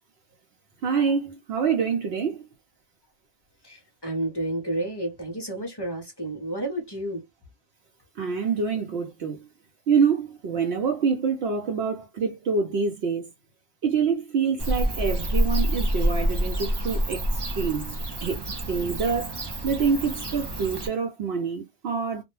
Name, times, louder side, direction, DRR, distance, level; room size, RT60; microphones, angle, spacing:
voice 1, 0.8-2.4 8.2-9.5 9.9-13.3 13.8-18.4 18.7-19.4 19.6-22.2, right 5 dB, 70° right, 0.8 m, -26 dB
voice 2, 3.6-7.2, right 1 dB, 30° left, 0.5 m, -31 dB
Bird / Cricket, 14.6-20.9, equal, 35° right, 0.4 m, -27 dB
2.2 x 2.1 x 3.0 m
omnidirectional pair, 1.1 m